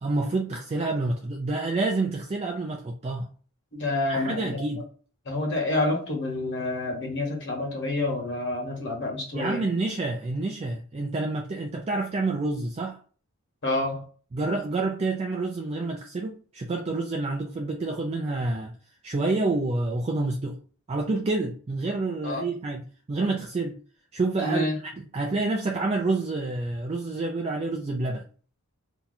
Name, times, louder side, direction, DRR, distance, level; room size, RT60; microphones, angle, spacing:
voice 1, 0.0-3.3 4.1-4.8 9.3-13.0 14.3-18.7 19.0-20.6 20.9-23.8 24.1-24.7 24.9-28.2, right 3 dB, 30° right, 1 dB, 0.4 m, -28 dB
voice 2, 3.7-4.6 5.2-9.6 13.6-14.1 22.2-22.4 24.4-24.8, left 2 dB, 55° left, -1 dB, 1.3 m, -28 dB
2.8 x 2.3 x 3.9 m, 0.41 s
head